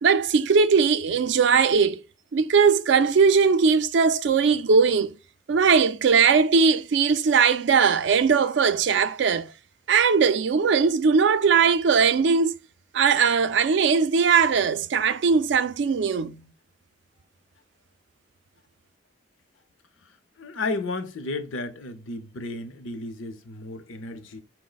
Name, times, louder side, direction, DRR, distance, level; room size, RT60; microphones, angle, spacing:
voice 1, 0.0-2.0 2.3-5.1 5.5-9.5 9.9-12.5 12.9-16.4, right 5 dB, 65° right, 0.4 m, -20 dB
voice 2, 20.4-24.4, left 2 dB, 85° left, 0.6 m, -33 dB
4.6 x 2.1 x 3.9 m
head